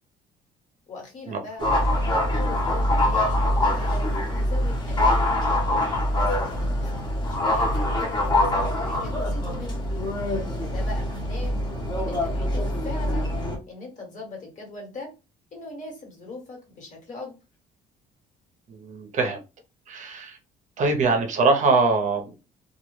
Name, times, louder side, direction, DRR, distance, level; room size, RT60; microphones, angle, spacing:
voice 1, 0.9-1.6 2.3-5.2 6.0-9.9 10.6-11.5 12.0-13.3 13.7-15.1 15.5-17.3, left 2 dB, 45° left, 1.3 m, -40 dB
sound 1, 1.6-13.6, left 1 dB, 25° left, 0.9 m, -24 dB
voice 2, 18.7-19.4 19.9-20.4 20.8-22.4, right 3 dB, 45° right, 0.6 m, -23 dB
2.3 x 2.1 x 3.0 m
cardioid pair, 110°, 17 cm